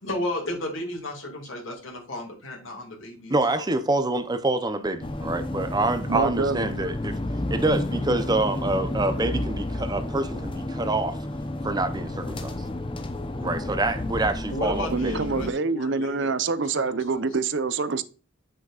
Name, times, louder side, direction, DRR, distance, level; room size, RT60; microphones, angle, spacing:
voice 1, 0.0-3.6 14.5-17.3, left 1 dB, 70° left, 2.4 m, -34 dB
voice 2, 3.3-7.2 7.5-11.2 11.6-12.5 13.4-15.2, right 2 dB, 20° right, 0.6 m, -26 dB
sound 1, 5.0-15.5, left 1 dB, 25° left, 0.7 m, -31 dB
voice 3, 6.1-6.7 14.9-18.0, right 4 dB, 60° right, 0.6 m, -26 dB
7.7 x 6.3 x 2.4 m
head